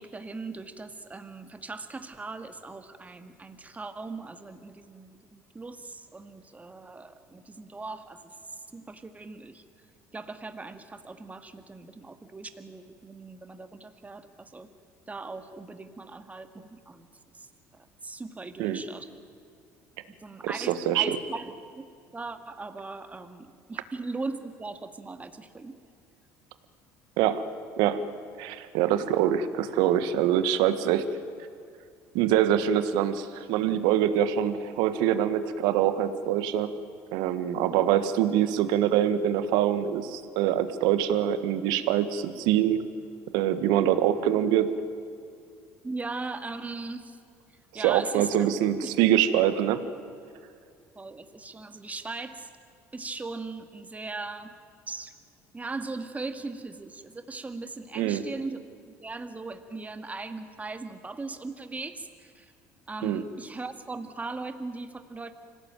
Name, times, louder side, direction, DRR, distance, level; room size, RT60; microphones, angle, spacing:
voice 1, 0.0-8.4 8.7-9.6 10.1-14.7 15.1-17.1 17.3-17.5 17.7-19.1 20.1-21.9 22.1-25.8 45.8-47.2 47.7-48.5 48.8-48.9 51.0-52.5 52.9-54.5 54.9-55.1 55.5-58.6 58.9-62.5 62.9-65.3, right 3 dB, 20° right, 8 dB, 2.0 m, -39 dB
voice 2, 20.4-21.2 27.2-27.5 27.8-28.1 28.4-31.1 32.1-36.7 37.1-42.8 43.3-44.8 47.7-49.8 58.0-58.2 63.0-63.2, right 10 dB, 75° right, 11 dB, 1.5 m, -24 dB
25.5 x 17.5 x 9.1 m, 2.3 s
hypercardioid pair, 70°, 7 cm